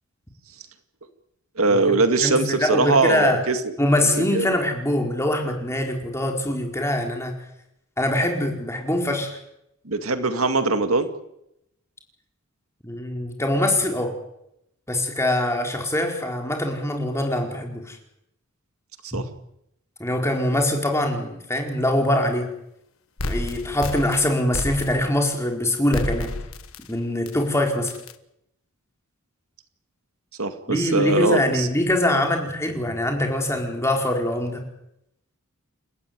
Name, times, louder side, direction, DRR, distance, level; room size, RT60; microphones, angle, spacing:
voice 1, 1.6-3.6 4.2-4.5 9.9-11.1 19.1-19.2 30.4-31.7, right 3 dB, 75° right, 8 dB, 2.1 m, -21 dB
voice 2, 2.2-3.4 3.8-7.3 8.0-9.4 12.8-14.2 14.9-18.0 19.1-19.2 20.0-22.5 23.2-26.3 26.9-27.9 30.7-34.6, left 1 dB, 10° left, 2 dB, 4.5 m, -23 dB
sound 1, 23.2-25.3 25.9-26.9 27.3-27.4 27.9-28.1, left 2 dB, 70° left, 1.5 m, -30 dB
29.5 x 14.5 x 9.4 m, 0.81 s
head